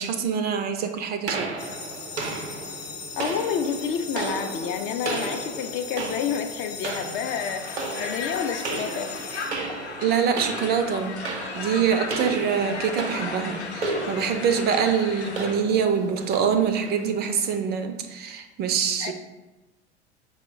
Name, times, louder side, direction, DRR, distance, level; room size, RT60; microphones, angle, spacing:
voice 1, 0.0-1.5 10.0-11.2 11.5-19.1, right 7 dB, 30° right, 7 dB, 0.4 m, -25 dB
sound 1, 1.3-17.6, right 3 dB, 80° right, 0.7 m, -35 dB
sound 2, 1.6-10.2, left 5 dB, 60° left, 0.8 m, -39 dB
voice 2, 3.1-9.1 19.0-19.1, left 7 dB, 40° left, 7 dB, 0.4 m, -29 dB
Crowd, 7.2-15.6, left 4 dB, 90° left, 0.6 m, -36 dB
5.5 x 2.1 x 4.3 m, 1.1 s
figure-of-eight pair, 75°, 33 cm